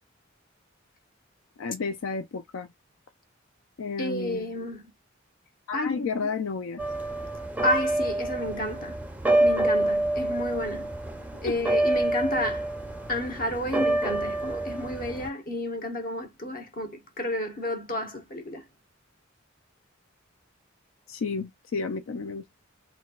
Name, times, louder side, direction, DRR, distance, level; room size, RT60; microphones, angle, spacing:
voice 1, 1.6-2.7 3.8-4.4 5.7-6.8 11.4-11.6 21.1-22.5, left 4 dB, 85° left, 0.4 m, -31 dB
voice 2, 4.0-4.9 5.7-6.1 7.6-9.0 9.4-10.9 11.4-12.7 13.1-18.6, left 1 dB, 45° left, 0.9 m, -31 dB
sound 1, 6.8-15.3, right 2 dB, 10° right, 0.4 m, -27 dB
4.0 x 2.2 x 2.4 m
head